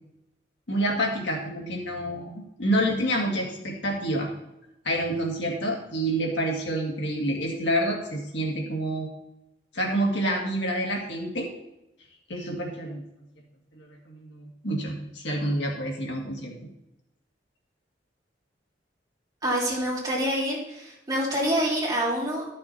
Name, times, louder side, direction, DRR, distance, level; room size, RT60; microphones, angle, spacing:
voice 1, 0.7-4.3 4.8-9.1 9.7-11.5 12.3-13.0 13.7-16.5, right 1 dB, 70° left, 0 dB, 2.2 m, -28 dB
voice 2, 19.4-22.5, equal, 20° right, -5 dB, 3.1 m, -26 dB
12.5 x 6.5 x 4.3 m, 0.89 s
head